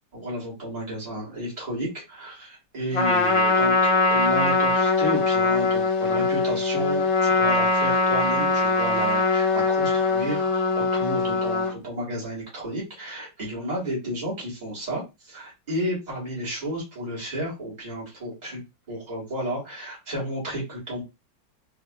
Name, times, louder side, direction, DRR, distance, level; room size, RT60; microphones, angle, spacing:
voice 1, 0.1-15.0 15.3-21.0, equal, 25° right, -6 dB, 2.1 m, -32 dB
Trumpet, 2.9-11.7, left 3 dB, 45° left, 0.4 m, -22 dB
4.0 x 3.2 x 2.5 m, 0.25 s
omnidirectional pair, 2.0 m